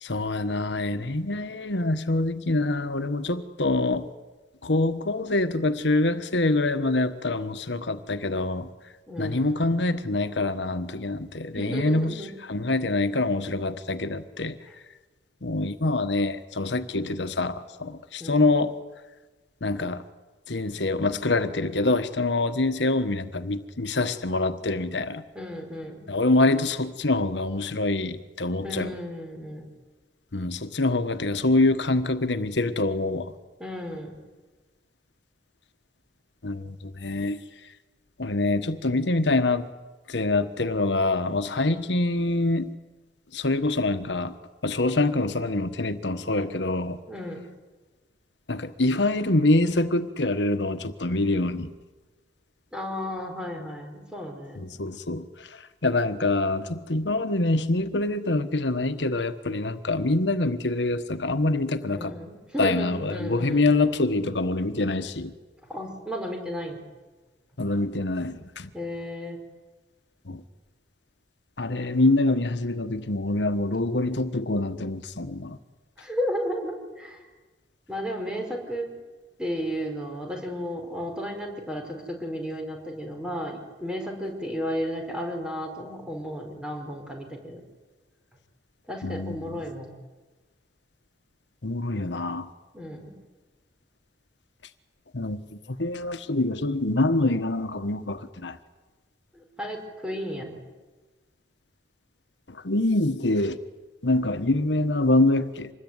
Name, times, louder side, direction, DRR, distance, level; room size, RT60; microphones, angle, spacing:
voice 1, 0.0-4.1 4.6-8.7 9.2-12.1 12.5-14.6 15.4-18.8 19.6-20.0 20.5-25.2 26.1-28.9 30.3-33.3 36.4-37.4 38.2-39.7 40.1-42.7 43.3-44.3 44.6-47.0 48.5-51.7 54.6-62.1 62.6-65.3 67.6-68.7 70.2-70.4 71.6-75.6 89.0-89.5 91.6-92.5 95.1-98.6 102.5-103.6 104.0-105.7, left 2 dB, 85° left, 1.4 m, -25 dB
voice 2, 9.1-9.6 11.5-12.3 18.2-18.5 25.4-26.0 28.6-29.7 33.6-34.2 47.1-47.5 52.7-54.7 61.9-63.6 65.7-66.8 68.7-69.4 76.0-77.3 77.9-78.9 79.4-87.6 88.9-89.9 92.7-93.1 99.3-100.6, equal, 5° right, 5.2 m, -33 dB
26.0 x 21.0 x 9.7 m
head